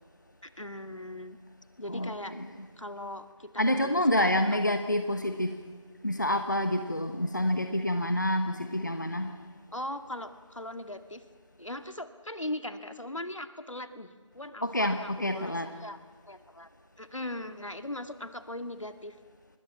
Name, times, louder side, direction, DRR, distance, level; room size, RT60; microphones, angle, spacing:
voice 1, 0.4-1.4 1.8-2.4 2.8-4.4 9.7-11.2 11.6-14.1 14.3-16.0 16.3-16.7 17.0-19.2, left 1 dB, 75° left, 8 dB, 2.2 m, -39 dB
voice 2, 1.9-2.7 3.6-5.6 6.0-9.3 14.6-15.7, left 1 dB, 35° left, 7 dB, 1.1 m, -28 dB
25.5 x 21.5 x 7.3 m, 1.4 s
figure-of-eight pair, 175°, 16 cm